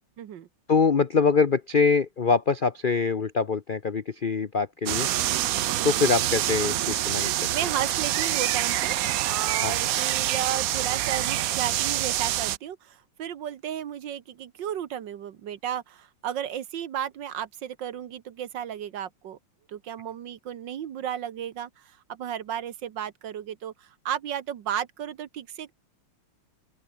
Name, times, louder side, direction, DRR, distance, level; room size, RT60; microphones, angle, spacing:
voice 1, 0.2-0.5 5.8-6.1 7.5-9.0 9.2-19.4 19.7-25.7, right 10 dB, 65° right, 1.7 m, -34 dB
voice 2, 0.7-5.1 5.8-7.3 9.6-9.7, left 5 dB, 70° left, 0.4 m, -24 dB
sound 1, 4.9-12.6, right 13 dB, 80° right, 0.7 m, -26 dB
open air
omnidirectional pair, 2.2 m